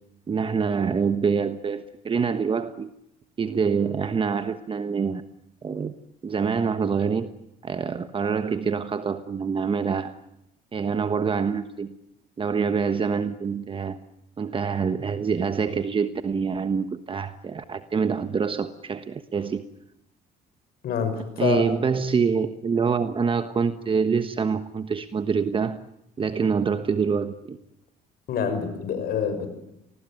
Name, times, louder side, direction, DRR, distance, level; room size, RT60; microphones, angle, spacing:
voice 1, 0.3-2.9 3.4-5.2 5.6-5.9 6.2-7.3 7.6-10.1 10.7-11.9 12.4-14.0 14.4-19.6 21.4-25.8 26.2-27.6, right 6 dB, 30° right, 10 dB, 1.3 m, -25 dB
voice 2, 20.8-21.7 28.3-29.5, left 7 dB, 65° left, 10 dB, 6.5 m, -26 dB
29.0 x 20.0 x 9.3 m, 0.82 s
cardioid pair, 110°, 17 cm